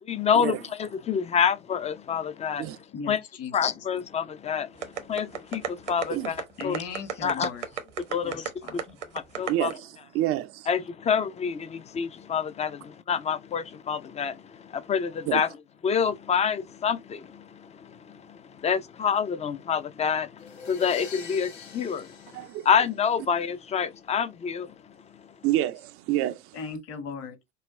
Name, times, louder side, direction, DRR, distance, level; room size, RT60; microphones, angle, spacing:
voice 1, 0.1-2.7 3.1-3.2 3.5-6.8 7.2-7.5 8.1-8.8 9.1-9.7 10.7-15.5 15.8-22.2 22.7-24.7, left 7 dB, 20° left, 0.5 m, -27 dB
voice 2, 2.9-3.6 6.6-7.7 8.2-9.0 26.5-27.4, left 5 dB, 40° left, 1.4 m, -37 dB
sound 1, 4.8-9.7, right 8 dB, 75° right, 1.0 m, -32 dB
voice 3, 9.5-10.7 15.3-15.4 22.3-22.7 25.4-26.6, right 14 dB, 40° right, 0.5 m, -28 dB
sound 2, 20.4-23.3, left 6 dB, 70° left, 2.3 m, -44 dB
5.4 x 2.3 x 3.1 m
figure-of-eight pair, 70°, 35 cm